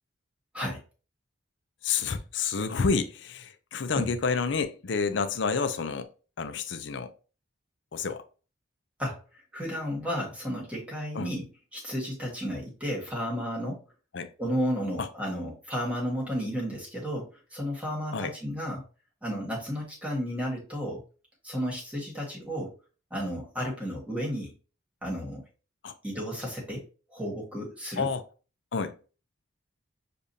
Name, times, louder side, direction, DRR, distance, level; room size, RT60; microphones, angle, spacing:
voice 1, 1.8-6.1 6.4-7.1 7.9-8.2 11.1-11.3 14.1-14.3 15.0-15.1 18.1-18.3 25.8-25.9 28.0-28.2 28.7-28.9, left 5 dB, 65° left, 0.5 m, -29 dB
voice 2, 9.5-13.8 14.4-18.8 19.2-21.0 21.4-22.7 23.1-24.5 25.0-25.4 26.0-28.1, equal, 5° right, 1.4 m, -33 dB
6.7 x 2.4 x 2.7 m
head